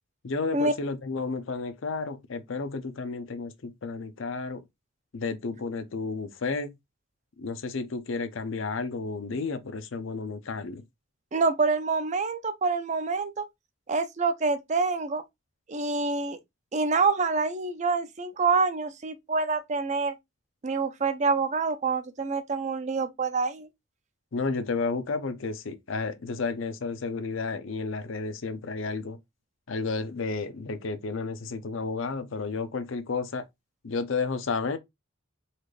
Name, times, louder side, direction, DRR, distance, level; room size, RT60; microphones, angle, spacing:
voice 1, 0.2-4.6 5.1-6.7 7.4-10.8 24.3-29.2 29.7-33.4 33.8-34.8, left 4 dB, 65° left, 0.6 m, -32 dB
voice 2, 11.3-13.4 13.9-15.2 15.7-16.4 16.7-20.2 20.6-23.7, right 4 dB, 35° right, 0.5 m, -26 dB
4.1 x 2.5 x 3.2 m
head